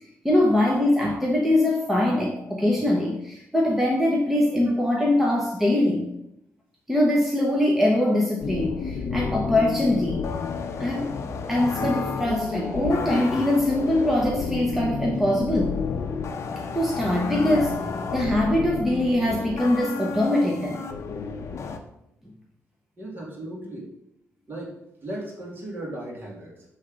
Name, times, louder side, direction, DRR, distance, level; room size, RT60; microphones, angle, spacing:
voice 1, 0.2-6.1 6.9-10.3 10.8-11.2 11.5-15.8 16.7-17.8 18.1-20.8, left 1 dB, 5° right, -2 dB, 0.9 m, -22 dB
sound 1, 8.4-21.8, left 5 dB, 60° left, 0.6 m, -31 dB
voice 2, 23.0-23.9 24.5-26.6, right 1 dB, 40° right, -3 dB, 2.2 m, -36 dB
7.3 x 3.3 x 5.1 m, 0.81 s
cardioid pair, 120°, 6 cm